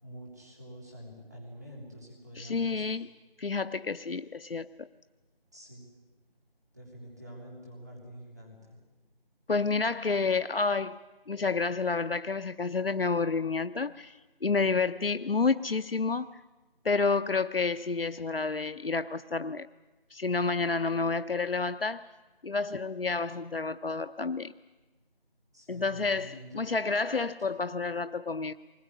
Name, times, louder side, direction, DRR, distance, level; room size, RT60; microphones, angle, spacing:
voice 1, 0.0-2.9 5.5-5.9 6.7-8.8 25.5-26.6, equal, 20° right, -3 dB, 3.4 m, -47 dB
voice 2, 2.3-3.1 3.4-4.9 9.5-16.3 16.8-19.7 20.1-22.0 22.4-24.5 25.7-28.5, left 4 dB, 75° left, 11 dB, 0.7 m, -29 dB
20.5 x 19.5 x 9.8 m, 1.2 s
figure-of-eight pair, 180°, 29 cm